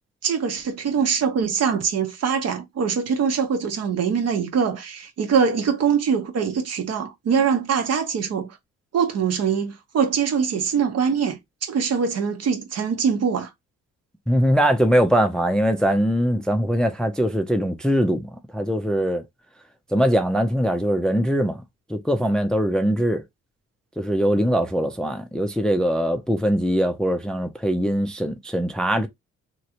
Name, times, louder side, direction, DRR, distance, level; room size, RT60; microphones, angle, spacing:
voice 1, 0.2-8.5 8.9-13.5, right 6 dB, 55° right, 0.8 m, -23 dB
voice 2, 14.3-19.2 19.9-21.6 21.9-23.2 24.0-29.1, equal, 5° left, 0.4 m, -22 dB
3.0 x 2.5 x 2.8 m
cardioid pair, 90°, 30 cm